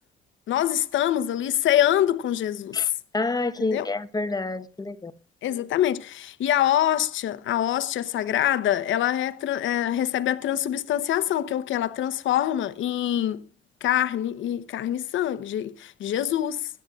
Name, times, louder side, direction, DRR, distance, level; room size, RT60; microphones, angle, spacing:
voice 1, 0.5-2.8 3.6-3.9 5.4-13.4 13.8-16.7, left 11 dB, 75° left, 0.9 m, -25 dB
voice 2, 3.1-5.1, left 3 dB, 20° left, 1.1 m, -28 dB
22.5 x 9.8 x 2.4 m
cardioid pair, 90°, 20 cm